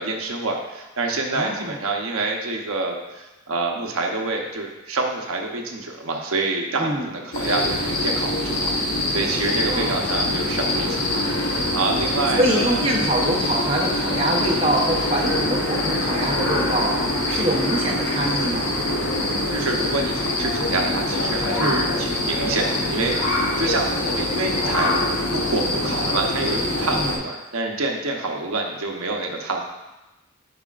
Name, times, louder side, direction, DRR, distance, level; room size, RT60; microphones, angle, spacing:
voice 1, 0.0-12.8 19.5-24.9 25.2-29.6, right 3 dB, 85° right, 1 dB, 0.9 m, -27 dB
voice 2, 1.3-1.7 6.8-7.1 9.7-9.9 12.4-18.7 21.6-21.8 27.0-27.1, right 1 dB, 25° right, -2 dB, 0.7 m, -24 dB
sound 1, 7.3-27.2, left 1 dB, 85° left, 1.2 m, -24 dB
9.9 x 4.8 x 2.5 m, 1.0 s
head